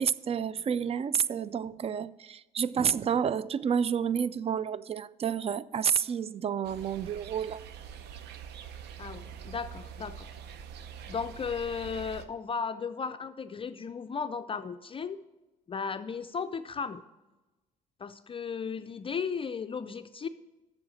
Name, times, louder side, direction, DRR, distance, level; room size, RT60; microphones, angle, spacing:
voice 1, 0.0-7.6, right 7 dB, 35° right, 0.4 m, -30 dB
sound 1, 6.6-12.2, right 7 dB, 75° right, 0.7 m, -45 dB
voice 2, 9.0-10.3 11.1-15.2 15.7-17.0 18.0-20.3, left 6 dB, 30° left, 0.4 m, -35 dB
7.9 x 7.0 x 6.2 m
supercardioid pair, 70°, 18 cm